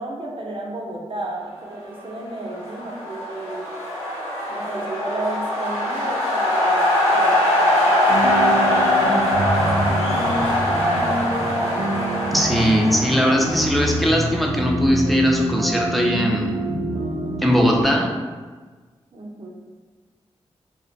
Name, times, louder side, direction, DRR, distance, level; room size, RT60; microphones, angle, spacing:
voice 1, 0.0-3.7 4.5-11.2 19.1-19.5, right 2 dB, 50° right, -1 dB, 0.7 m, -34 dB
sound 1, 2.3-14.3, left 1 dB, 80° left, 1.0 m, -22 dB
sound 2, 8.1-17.8, right 1 dB, 90° right, 0.5 m, -26 dB
voice 2, 12.3-16.5 17.4-18.1, equal, ahead, -1 dB, 0.6 m, -19 dB
2.4 x 2.1 x 3.9 m, 1.4 s
cardioid pair, 45°, 11 cm